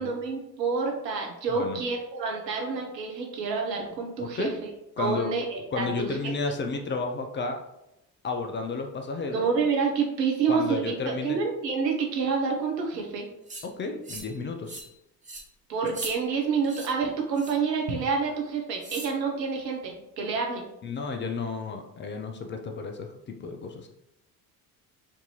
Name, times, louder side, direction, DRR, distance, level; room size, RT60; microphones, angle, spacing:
voice 1, 0.0-4.5 5.0-6.3 9.3-13.3 15.7-20.6, right 5 dB, 85° right, 1 dB, 0.8 m, -28 dB
voice 2, 4.2-4.5 5.0-5.3 5.7-7.6 8.2-9.5 10.5-11.4 13.6-14.8 20.8-23.9, left 4 dB, 25° left, 4 dB, 0.4 m, -32 dB
sound 1, 13.5-13.7 14.0-14.4 14.7-14.9 15.2-15.4 15.9-16.1 16.6-16.9 17.4-17.7 18.8-19.1, right 2 dB, 15° right, 1.0 m, -39 dB
4.4 x 2.6 x 3.0 m, 0.85 s
figure-of-eight pair, 55°, 49 cm